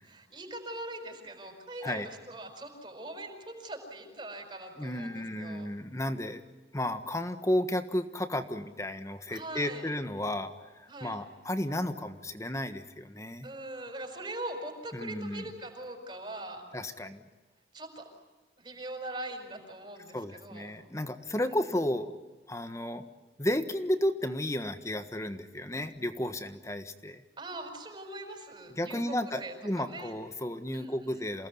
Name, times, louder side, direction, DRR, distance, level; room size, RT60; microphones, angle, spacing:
voice 1, 0.0-5.7 9.3-9.9 10.9-11.2 13.4-16.6 17.7-18.0 18.6-20.7 21.3-21.6 27.4-30.2 30.7-31.2, right 1 dB, 25° right, 4 dB, 6.0 m, -42 dB
voice 2, 4.8-6.4 6.7-13.5 14.9-15.5 16.7-17.2 20.1-22.1 22.5-23.0 23.4-27.2 28.8-31.5, left 1 dB, 15° left, 9 dB, 1.5 m, -33 dB
28.5 x 19.0 x 9.6 m, 1.2 s
head